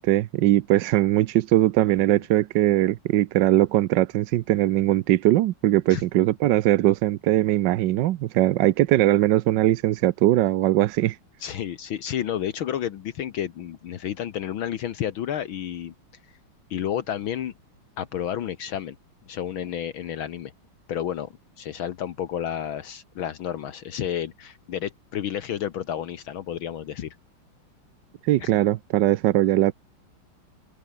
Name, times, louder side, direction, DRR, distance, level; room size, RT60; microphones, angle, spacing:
voice 1, 0.0-11.2 28.2-29.7, right 14 dB, 70° right, 1.2 m, -20 dB
voice 2, 11.4-15.9 16.7-17.5 18.0-19.0 19.3-20.5 20.9-27.2 28.4-28.5, left 10 dB, 70° left, 1.9 m, -31 dB
open air
omnidirectional pair, 2.4 m